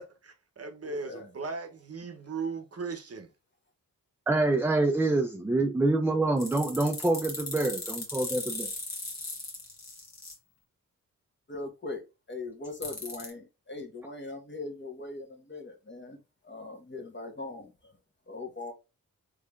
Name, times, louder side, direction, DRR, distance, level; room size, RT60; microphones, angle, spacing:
voice 1, 0.0-3.3, right 4 dB, 45° right, 0.8 m, -37 dB
voice 2, 0.8-1.3 11.5-12.0 12.3-18.0 18.3-18.7, left 3 dB, 30° left, 1.2 m, -40 dB
voice 3, 4.3-8.7, right 2 dB, 5° right, 0.4 m, -26 dB
sound 1, 6.4-10.3 12.8-13.3, left 2 dB, 50° left, 1.5 m, -37 dB
3.5 x 3.4 x 2.4 m
cardioid pair, 55°, 34 cm